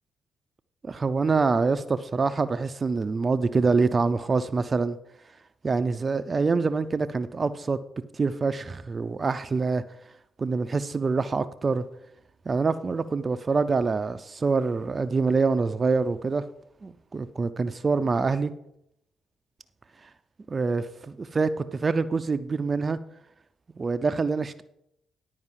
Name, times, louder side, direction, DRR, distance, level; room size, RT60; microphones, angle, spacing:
voice 1, 0.8-5.0 5.6-7.8 8.1-9.8 10.4-11.8 12.5-16.4 16.8-18.5 20.5-23.0 23.8-24.6, right 4 dB, 40° right, 11 dB, 0.5 m, -25 dB
11.0 x 4.7 x 7.4 m, 0.77 s
supercardioid pair, 55°, 0 cm